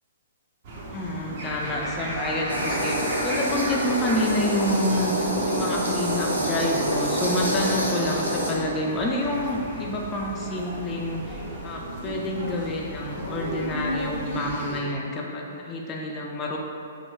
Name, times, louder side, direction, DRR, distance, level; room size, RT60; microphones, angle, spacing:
sound 1, 0.6-14.8, right 1 dB, 40° right, 0.5 m, -35 dB
voice 1, 0.9-16.6, left 1 dB, 20° left, -2 dB, 0.3 m, -28 dB
sound 2, 2.5-8.5, right 1 dB, 75° right, 0.7 m, -27 dB
2.9 x 2.3 x 3.1 m, 2.5 s
figure-of-eight pair, 115°, 0 cm